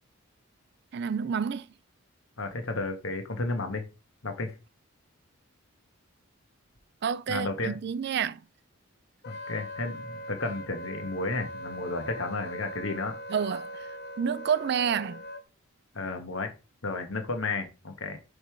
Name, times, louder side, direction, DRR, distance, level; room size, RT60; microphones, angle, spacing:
voice 1, 0.9-1.7 7.0-8.4 13.3-15.2, right 7 dB, 50° right, 0.3 m, -29 dB
voice 2, 2.4-3.8 4.2-4.5 7.3-7.7 9.2-13.1 15.9-16.5 16.8-18.2, left 3 dB, 65° left, 1.3 m, -32 dB
Wind instrument woodwind instrument, 9.2-15.4, equal, 50° left, 0.7 m, -41 dB
6.6 x 3.3 x 4.5 m
head